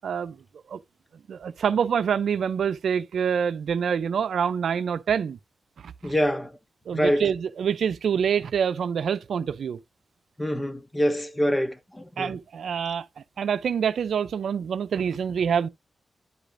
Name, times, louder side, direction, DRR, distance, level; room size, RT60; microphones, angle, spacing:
voice 1, 0.0-0.4 0.7-0.8 1.3-5.4 5.8-6.1 6.9-9.8 12.2-13.1 13.4-15.7, right 7 dB, 85° right, 0.5 m, -26 dB
voice 2, 6.0-6.5 6.9-7.3 10.4-12.3, equal, 20° left, 1.5 m, -25 dB
11.0 x 5.0 x 2.6 m
cardioid pair, 60°, 0 cm